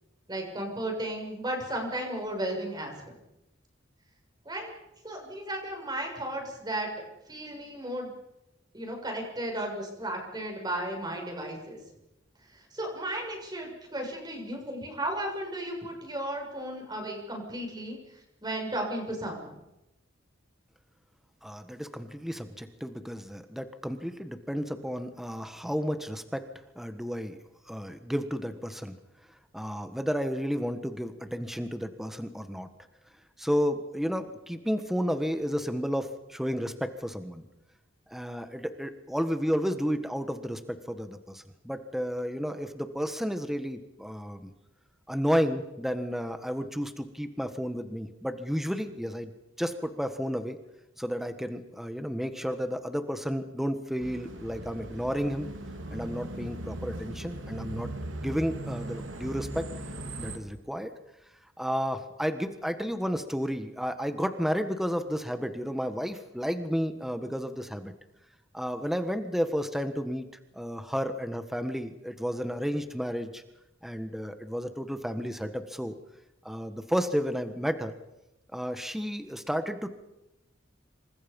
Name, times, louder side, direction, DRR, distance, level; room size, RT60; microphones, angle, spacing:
voice 1, 0.3-3.1 4.4-4.7 5.0-6.9 7.3-8.1 8.7-11.8 12.5-18.0 18.4-19.6, right 1 dB, 20° right, 2 dB, 6.5 m, -34 dB
voice 2, 21.4-26.5 26.7-27.4 27.7-28.9 29.5-32.7 33.4-37.4 38.1-44.5 45.1-49.3 49.6-50.6 51.0-55.5 55.9-57.9 58.2-59.7 60.2-60.9 61.6-67.9 68.5-70.3 70.5-73.4 73.8-75.9 76.4-77.9 78.5-79.9, equal, ahead, 8 dB, 1.5 m, -32 dB
sound 1, 54.0-60.4, right 1 dB, 75° right, 3.3 m, -39 dB
28.0 x 24.5 x 5.4 m, 0.90 s
head